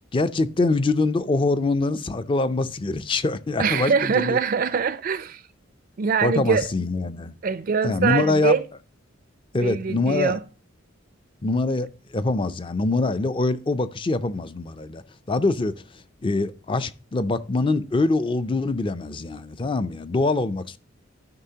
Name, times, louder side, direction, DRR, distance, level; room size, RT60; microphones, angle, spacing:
voice 1, 0.1-4.4 6.2-7.3 7.8-8.5 9.5-10.4 11.4-15.0 15.3-15.8 16.2-20.8, left 3 dB, 25° left, 0.4 m, -24 dB
voice 2, 3.6-5.4 6.0-6.7 7.4-8.7 9.6-10.4, right 5 dB, 45° right, 0.4 m, -23 dB
13.5 x 5.6 x 2.8 m
head